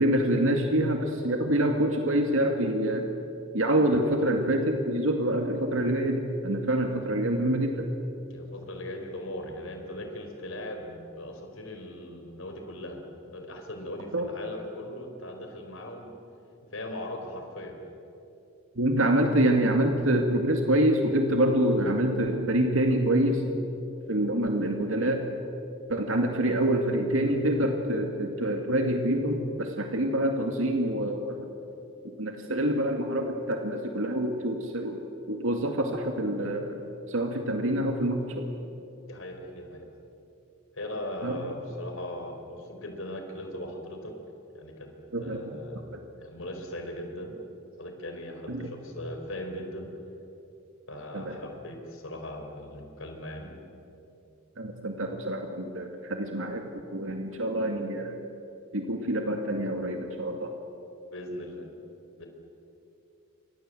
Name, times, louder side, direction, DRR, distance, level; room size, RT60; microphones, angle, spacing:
voice 1, 0.0-3.1 3.5-7.9 14.1-14.3 18.8-23.4 24.1-25.2 25.9-31.4 32.2-35.0 35.3-36.8 37.1-38.5 41.2-41.4 45.1-45.4 45.9-46.0 48.5-48.7 51.1-51.3 54.6-56.6 56.9-58.2 58.7-60.5, right 1 dB, 80° right, 3 dB, 2.2 m, -26 dB
voice 2, 8.3-13.0 13.3-16.1 16.7-17.7 39.1-39.9 40.7-44.1 44.5-44.9 45.2-45.8 46.2-47.4 47.8-49.9 50.9-53.5 57.3-57.4 61.1-61.7 62.2-62.3, left 1 dB, 75° left, 4 dB, 4.4 m, -39 dB
28.5 x 24.0 x 7.8 m, 2.9 s
head